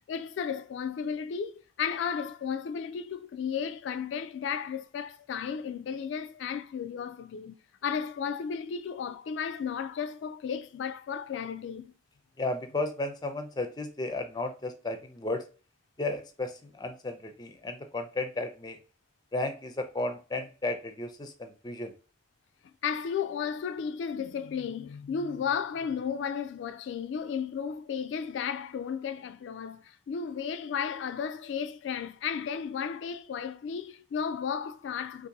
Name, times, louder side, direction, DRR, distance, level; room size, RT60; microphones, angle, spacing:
voice 1, 0.1-7.5 7.8-11.9 22.8-35.3, left 7 dB, 80° left, 0.3 m, -34 dB
voice 2, 12.4-15.4 16.0-18.8 19.3-21.9, left 2 dB, 25° left, 0.5 m, -34 dB
2.7 x 2.5 x 3.9 m
head